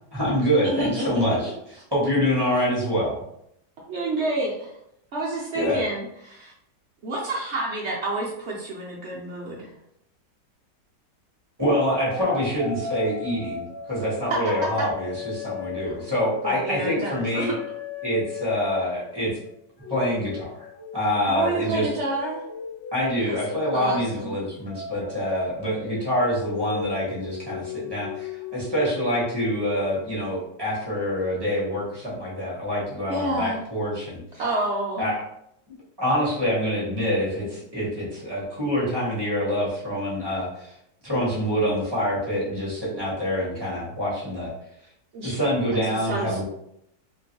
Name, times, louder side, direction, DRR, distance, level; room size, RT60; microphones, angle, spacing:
voice 1, 0.1-1.5 1.9-3.2 5.5-5.8 11.6-13.6 13.9-17.5 18.0-19.4 19.9-20.7 20.9-21.9 22.9-34.2 35.0-35.1 36.0-40.7 41.0-44.5 45.2-46.4, equal, 15° right, -7 dB, 1.0 m, -26 dB
voice 2, 0.6-1.1 3.9-4.7 5.1-6.5 7.0-9.7 14.3-14.4 15.8-16.0 16.4-17.5 21.3-22.4 23.2-23.4 23.7-24.4 33.1-33.6 34.4-35.1 45.1-45.4 45.8-46.4, right 2 dB, 70° right, -4 dB, 0.6 m, -29 dB
sound 1, 12.1-19.5 19.8-30.9, left 5 dB, 60° left, 0.6 m, -37 dB
2.9 x 2.5 x 2.8 m, 0.75 s
omnidirectional pair, 1.9 m